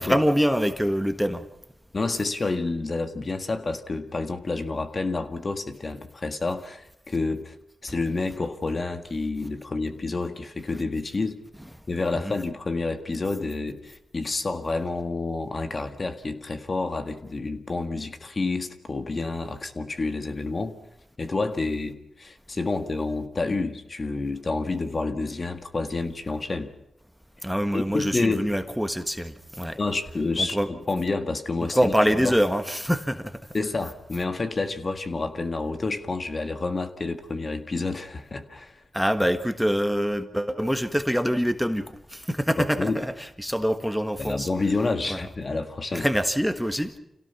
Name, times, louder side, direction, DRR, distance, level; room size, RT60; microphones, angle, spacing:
voice 1, 0.0-1.4 12.1-12.3 27.4-29.8 30.4-30.7 31.7-33.4 38.9-44.5 45.1-45.2 45.9-46.9, equal, ahead, 1.5 m, -25 dB
voice 2, 1.9-7.5 7.8-11.4 11.9-20.7 21.2-26.7 27.7-28.5 29.8-31.9 32.2-32.4 33.5-38.8 42.6-43.0 44.2-46.1, left 3 dB, 40° left, 1.8 m, -29 dB
27.0 x 17.0 x 5.9 m
cardioid pair, 55°, 0 cm